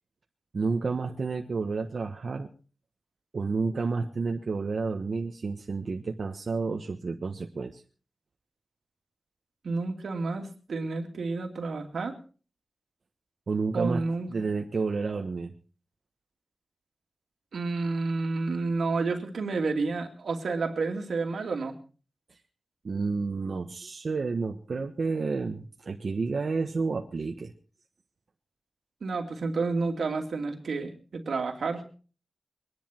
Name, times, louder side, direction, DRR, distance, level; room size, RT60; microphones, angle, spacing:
voice 1, 0.5-2.5 3.3-7.8 13.5-14.0 14.3-15.5 22.8-27.5, right 4 dB, 60° right, 2 dB, 1.3 m, -30 dB
voice 2, 9.6-12.2 13.7-14.3 17.5-21.7 29.0-31.8, right 3 dB, 85° right, 3 dB, 2.6 m, -30 dB
23.0 x 10.5 x 4.5 m, 0.39 s
wide cardioid pair, 100°, 0 cm